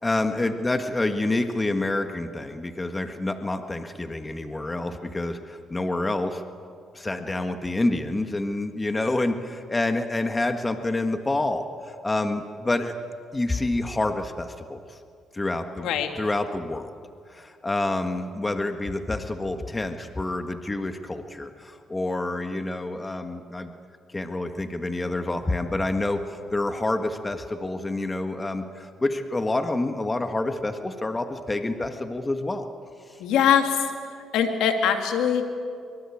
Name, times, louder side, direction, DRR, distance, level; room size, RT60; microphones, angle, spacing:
voice 1, 0.0-6.4 6.9-12.9 13.3-15.0 15.3-15.9 16.2-16.9 17.3-23.7 24.1-32.7, left 2 dB, 20° left, 7 dB, 1.6 m, -28 dB
voice 2, 33.2-33.8 34.3-35.5, left 8 dB, 90° left, 5 dB, 2.5 m, -22 dB
24.0 x 24.0 x 8.6 m, 2.3 s
cardioid pair, 90°, 0 cm